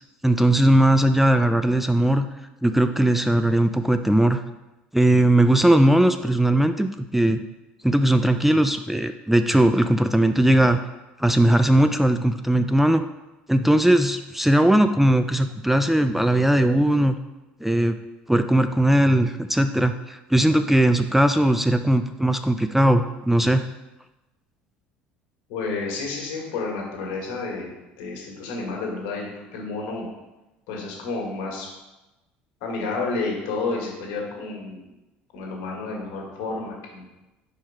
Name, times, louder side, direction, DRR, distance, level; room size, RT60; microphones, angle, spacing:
voice 1, 0.2-2.3 2.6-4.4 4.9-7.4 7.8-10.8 11.2-13.0 13.5-17.2 17.6-18.0 18.3-23.6, right 1 dB, 5° right, 9 dB, 0.3 m, -19 dB
voice 2, 25.5-30.1 30.7-31.7 32.6-34.9 35.3-37.1, left 3 dB, 70° left, -1 dB, 1.6 m, -30 dB
4.6 x 4.5 x 4.8 m, 1.0 s
hypercardioid pair, 70°, 5 cm